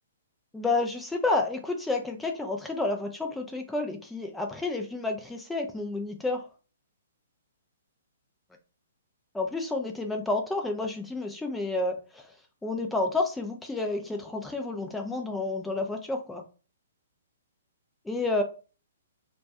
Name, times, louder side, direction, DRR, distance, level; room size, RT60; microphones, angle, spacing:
voice 1, 0.5-6.4 9.3-12.2 12.6-16.4 18.1-18.4, left 2 dB, 5° left, 0.4 m, -30 dB
2.2 x 2.1 x 2.6 m
hypercardioid pair, 130°, 0 cm